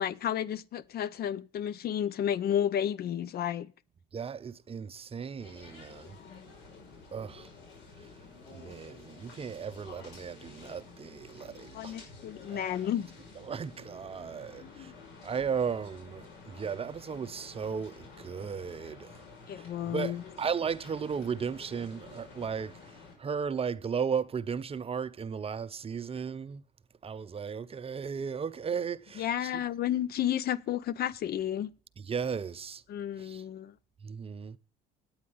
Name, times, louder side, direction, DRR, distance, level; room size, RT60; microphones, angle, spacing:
voice 1, 0.0-3.7 6.0-6.4 11.7-13.1 14.6-14.9 19.5-20.2 29.2-31.7 32.9-33.7, left 10 dB, 55° left, 0.6 m, -32 dB
voice 2, 4.1-6.1 7.1-7.5 8.5-12.0 12.5-12.7 13.5-14.9 15.2-19.1 19.5-22.8 23.2-26.6 27.0-29.6 32.1-32.8 33.2-33.4 34.0-34.6, right 6 dB, 30° right, 0.6 m, -35 dB
sound 1, 5.4-23.1, left 4 dB, 70° left, 6.0 m, -51 dB
9.6 x 8.8 x 5.4 m
supercardioid pair, 90°, 19 cm